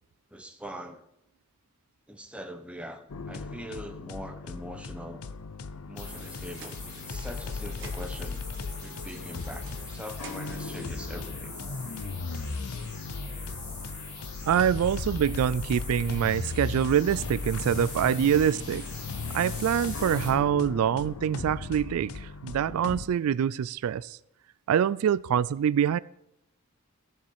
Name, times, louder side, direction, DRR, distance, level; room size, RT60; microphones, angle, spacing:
voice 1, 0.3-1.0 2.1-5.2 5.9-8.4 8.8-11.5, equal, 5° right, 0.8 m, -42 dB
sound 1, 3.1-23.1, left 4 dB, 85° left, 0.7 m, -37 dB
sound 2, 6.0-20.3, left 3 dB, 50° left, 4.6 m, -43 dB
sound 3, 6.1-7.4 7.7-8.3 9.1-10.7, right 5 dB, 55° right, 1.8 m, -51 dB
voice 2, 14.4-18.9 19.3-24.2 24.7-26.0, right 9 dB, 80° right, 0.3 m, -25 dB
15.0 x 7.3 x 4.7 m
head